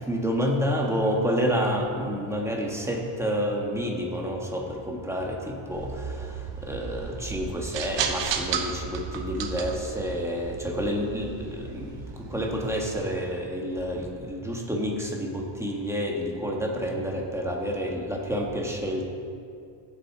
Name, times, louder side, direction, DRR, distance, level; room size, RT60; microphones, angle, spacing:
voice 1, 0.0-19.1, equal, 5° right, -1 dB, 1.5 m, -29 dB
sound 1, 5.7-13.1, right 7 dB, 65° right, 1.2 m, -34 dB
15.5 x 7.6 x 4.7 m, 2.4 s
cardioid pair, 140°, 46 cm